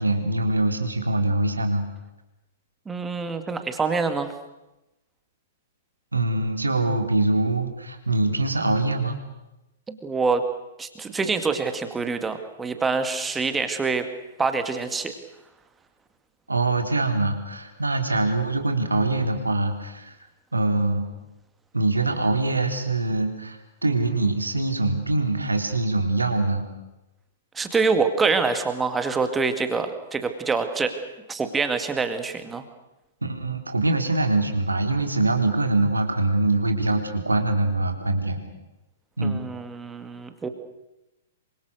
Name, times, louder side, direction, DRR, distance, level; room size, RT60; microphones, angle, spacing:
voice 1, 0.0-1.8 6.1-9.2 16.5-20.2 20.5-21.0 21.7-26.7 33.2-38.4 39.2-39.4, right 2 dB, 80° right, 5 dB, 3.6 m, -23 dB
voice 2, 2.9-4.3 9.9-10.5 10.8-14.1 14.4-15.1 27.6-30.9 31.3-32.6 39.2-40.5, right 4 dB, 10° right, 8 dB, 2.3 m, -25 dB
27.0 x 25.0 x 6.6 m, 0.97 s
figure-of-eight pair, 110°, 0 cm